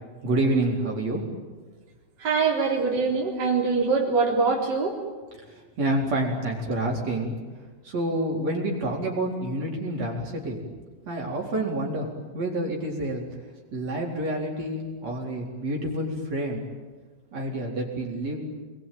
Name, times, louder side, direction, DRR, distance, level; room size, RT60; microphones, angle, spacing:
voice 1, 0.2-1.2 5.2-7.3 7.8-10.6 11.1-12.1 12.3-13.2 13.7-16.6 17.3-18.6, right 1 dB, 45° right, -1 dB, 5.2 m, -28 dB
voice 2, 2.2-4.9, right 4 dB, 25° right, -3 dB, 4.1 m, -23 dB
28.5 x 22.0 x 9.2 m, 1.4 s
omnidirectional pair, 4.2 m